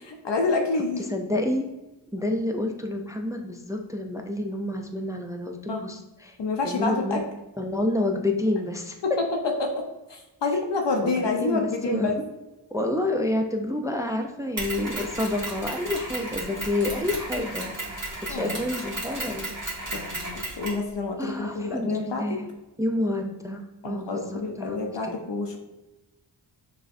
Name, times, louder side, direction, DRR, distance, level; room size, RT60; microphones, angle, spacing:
voice 1, 0.0-1.1 5.7-5.9 6.4-7.2 9.0-9.1 9.4-9.8 10.1-12.2 18.3-18.6 19.9-22.4 23.8-25.6, left 3 dB, 70° left, 2 dB, 0.5 m, -28 dB
voice 2, 1.0-1.7 2.1-6.4 6.6-7.2 7.6-9.0 11.0-12.1 12.7-18.0 18.3-19.5 21.2-22.5 22.8-25.1, left 1 dB, 10° right, 3 dB, 0.3 m, -29 dB
Mechanisms, 14.6-20.9, right 1 dB, 40° right, 1.5 m, -34 dB
6.0 x 2.1 x 2.5 m, 1.0 s
wide cardioid pair, 45°, 45 cm